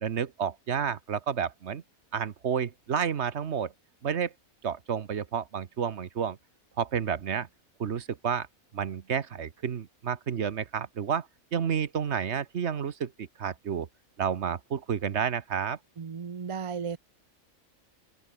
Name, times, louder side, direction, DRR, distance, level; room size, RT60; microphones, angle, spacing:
voice 1, 0.0-1.8 2.1-3.7 4.0-4.3 4.6-6.4 6.8-7.5 7.8-8.5 8.7-11.3 11.5-13.9 14.2-15.8, right 7 dB, 55° right, 1.3 m, -30 dB
voice 2, 16.0-17.0, right 6 dB, 40° right, 0.5 m, -34 dB
open air
omnidirectional pair, 1.4 m